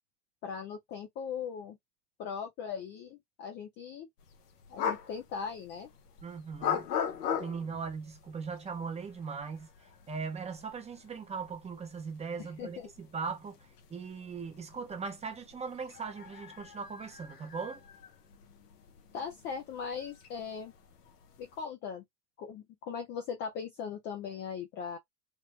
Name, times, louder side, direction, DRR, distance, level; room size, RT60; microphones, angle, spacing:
voice 1, 0.4-1.8 2.2-4.1 4.7-5.9 12.4-12.9 19.1-20.7 21.4-22.0 22.4-25.0, left 6 dB, 25° left, 0.3 m, -39 dB
sound 1, 4.2-21.7, left 8 dB, 85° left, 1.0 m, -41 dB
voice 2, 6.2-6.9 7.3-9.7 10.1-13.6 13.9-17.8, right 5 dB, 15° right, 0.6 m, -39 dB
3.6 x 2.1 x 3.0 m
hypercardioid pair, 115°, 46 cm